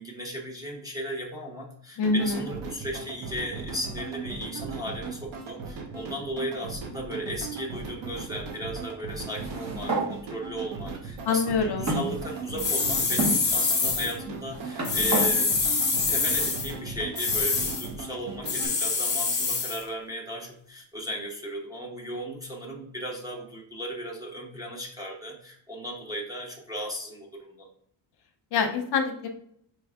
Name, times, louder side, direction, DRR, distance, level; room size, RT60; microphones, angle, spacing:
voice 1, 0.0-15.5 16.1-27.7, equal, 10° right, -3 dB, 0.6 m, -36 dB
voice 2, 2.0-2.4 11.3-11.9 28.5-29.3, left 4 dB, 55° left, 5 dB, 0.8 m, -25 dB
sound 1, 2.0-18.7, right 4 dB, 75° right, 0.9 m, -38 dB
sound 2, 9.3-10.1 10.9-11.0 11.9-12.7 13.2-13.4 14.3-15.3, right 2 dB, 35° right, 0.9 m, -30 dB
sound 3, 12.6-14.1 14.8-16.7 17.1-17.9 18.4-19.8, left 4 dB, 20° left, 0.8 m, -25 dB
4.5 x 3.3 x 3.5 m, 0.67 s
cardioid pair, 160°, 47 cm